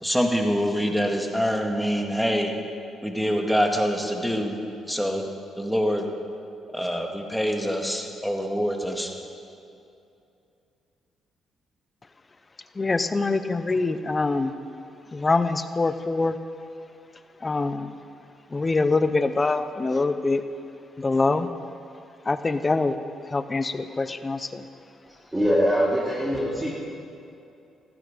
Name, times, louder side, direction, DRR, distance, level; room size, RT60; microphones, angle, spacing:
voice 1, 0.0-2.5 3.0-4.6 4.9-5.2 5.6-6.0 6.7-9.1, equal, ahead, 2 dB, 2.0 m, -25 dB
voice 2, 12.7-14.5 15.1-16.4 17.4-17.9 18.5-20.4 21.0-21.5 22.2-23.0 23.2-24.7, left 3 dB, 25° left, 11 dB, 0.9 m, -24 dB
voice 3, 25.1-26.7, equal, 15° right, -6 dB, 2.8 m, -23 dB
16.0 x 15.0 x 5.3 m, 2.6 s
cardioid pair, 90°, 0 cm